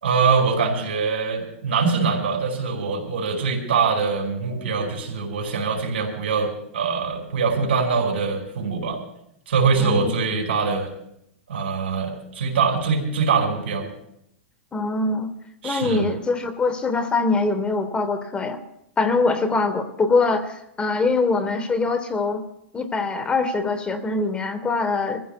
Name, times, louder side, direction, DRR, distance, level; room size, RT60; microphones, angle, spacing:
voice 1, 0.0-9.0 9.5-10.9 11.5-13.9 15.6-16.1, right 5 dB, 80° right, 2 dB, 5.0 m, -23 dB
voice 2, 9.8-10.1 14.7-15.3 15.6-18.6 19.0-22.4 22.7-25.2, left 3 dB, 15° left, 9 dB, 1.1 m, -23 dB
28.0 x 15.0 x 2.2 m, 0.78 s
hypercardioid pair, 135°, 6 cm